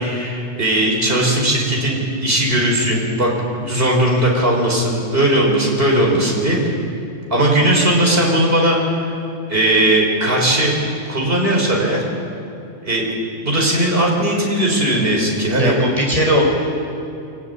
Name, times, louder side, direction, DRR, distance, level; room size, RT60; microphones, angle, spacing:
voice 1, 0.0-3.3 3.6-6.7 7.3-9.1 9.5-10.8 11.0-12.0 12.8-13.1 13.4-15.8, right 1 dB, 50° right, -1 dB, 5.1 m, -18 dB
voice 2, 15.6-16.4, equal, 30° right, -1 dB, 5.3 m, -18 dB
25.0 x 16.5 x 9.7 m, 2.7 s
omnidirectional pair, 1.3 m